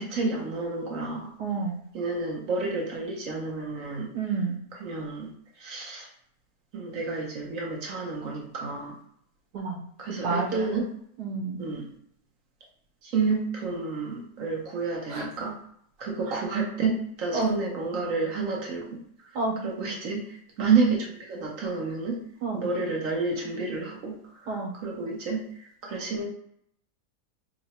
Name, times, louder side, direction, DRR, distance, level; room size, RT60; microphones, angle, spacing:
voice 1, 0.0-1.3 1.9-4.1 4.8-5.3 5.6-6.1 6.7-9.0 10.0-10.9 11.6-11.9 13.0-15.6 16.0-18.9 19.6-20.2 20.6-22.2 22.5-25.4 25.8-26.3, right 4 dB, 60° right, -1 dB, 1.0 m, -30 dB
voice 2, 1.4-1.8 4.1-4.6 9.5-9.8 10.2-10.8 11.2-11.7 15.1-15.2 17.3-17.5 19.3-19.6 22.4-22.6 24.5-24.7, right 3 dB, 80° right, 0 dB, 1.6 m, -29 dB
3.8 x 2.1 x 4.1 m, 0.70 s
omnidirectional pair, 1.8 m